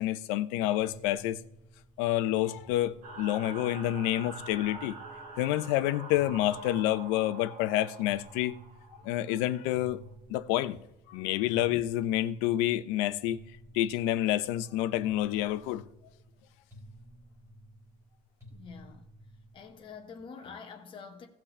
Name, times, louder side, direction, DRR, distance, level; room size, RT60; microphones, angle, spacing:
voice 1, 0.0-1.4 2.0-4.9 5.4-8.6 9.0-10.0 10.3-10.8 11.1-13.4 13.7-15.8, left 14 dB, 70° left, 0.8 m, -28 dB
sound 1, 0.8-20.1, equal, 15° right, 4.3 m, -53 dB
sound 2, 3.0-9.9, right 3 dB, 45° right, 2.6 m, -46 dB
voice 2, 18.5-19.1 19.5-21.3, left 5 dB, 25° left, 1.5 m, -46 dB
17.5 x 6.0 x 3.3 m
cardioid pair, 170°, 20 cm